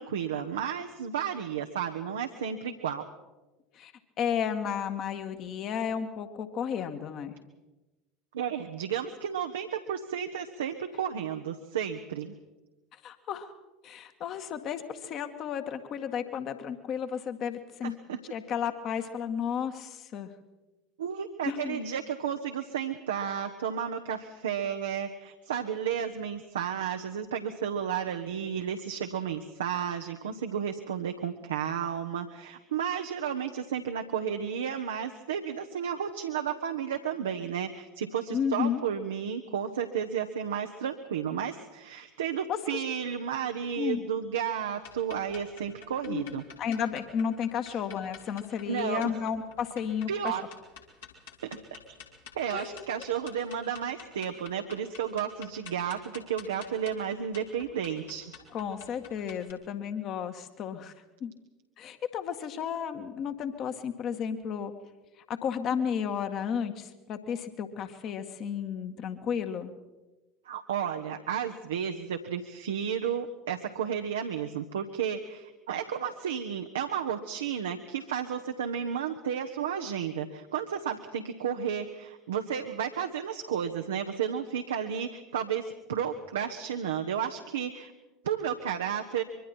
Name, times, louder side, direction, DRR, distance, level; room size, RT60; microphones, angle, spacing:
voice 1, 0.0-3.1 8.3-12.3 17.8-18.2 21.0-46.4 47.7-47.8 48.7-49.1 50.1-50.4 51.4-51.6 52.3-58.3 70.5-87.9 88.2-89.2, right 8 dB, 70° right, 5 dB, 1.0 m, -32 dB
voice 2, 4.2-7.4 13.0-13.5 13.8-17.9 18.3-20.3 21.5-21.8 38.3-38.8 42.5-42.8 43.8-44.0 46.1-46.2 46.6-50.4 52.5-52.9 58.5-60.9 61.2-61.3 61.8-64.7 65.3-69.7, left 7 dB, 40° left, 7 dB, 1.9 m, -33 dB
sound 1, 44.8-59.5, left 7 dB, 70° left, 3.6 m, -50 dB
25.0 x 23.5 x 4.4 m, 1.1 s
figure-of-eight pair, 70°, 0 cm